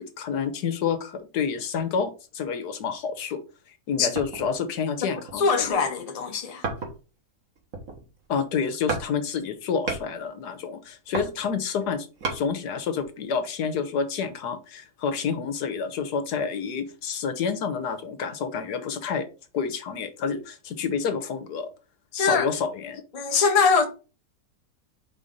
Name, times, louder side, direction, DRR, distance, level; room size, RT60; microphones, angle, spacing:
voice 1, 0.2-3.4 3.9-5.9 8.3-19.3 19.5-21.7 22.2-23.0, left 6 dB, 80° left, 1.5 m, -29 dB
sound 1, 4.2-4.6 5.2-5.8 6.6-7.2 7.6-8.3 8.9-9.1 9.4-10.1 10.8-12.4 13.0-13.1, right 4 dB, 60° right, 1.8 m, -33 dB
voice 2, 5.4-6.6 22.1-22.5 23.1-23.9, left 5 dB, 30° left, 0.8 m, -22 dB
4.5 x 4.0 x 5.1 m
omnidirectional pair, 1.7 m